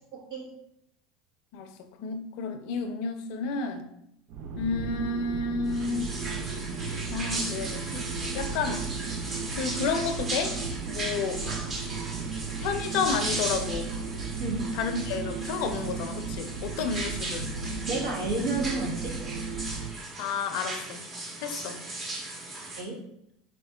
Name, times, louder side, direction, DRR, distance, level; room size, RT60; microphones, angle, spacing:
voice 1, 0.1-0.5 14.4-14.6 17.9-19.1 22.8-23.0, right 3 dB, 75° right, -2 dB, 1.4 m, -30 dB
voice 2, 2.0-3.8 4.6-6.1 7.1-7.9 8.3-8.8 9.5-10.6 10.8-11.4 12.6-13.9 14.8-17.5 20.2-21.0 21.4-21.8, left 5 dB, 65° left, 8 dB, 0.5 m, -31 dB
sound 1, 4.3-20.0, right 5 dB, 60° right, 0.4 m, -35 dB
sound 2, 5.7-22.8, right 2 dB, 35° right, 1.3 m, -37 dB
4.4 x 4.2 x 2.3 m, 0.77 s
hypercardioid pair, 95°, 0 cm